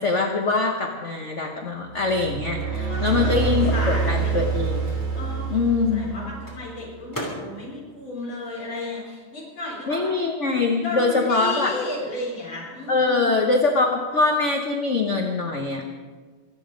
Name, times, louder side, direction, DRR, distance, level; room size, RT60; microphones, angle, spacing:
voice 1, 0.0-4.9 5.5-6.1 9.9-11.7 12.9-15.8, left 3 dB, 45° left, 3 dB, 1.1 m, -23 dB
sound 1, 1.9-6.6, right 5 dB, 65° right, 4.1 m, -26 dB
Microwave oven, 2.2-9.3 9.6-11.5, equal, 10° left, 2.8 m, -43 dB
voice 2, 2.9-4.4 5.1-5.6 5.9-10.2 10.8-13.3, left 2 dB, 80° left, -4 dB, 4.4 m, -33 dB
23.5 x 8.6 x 5.2 m, 1.4 s
omnidirectional pair, 2.3 m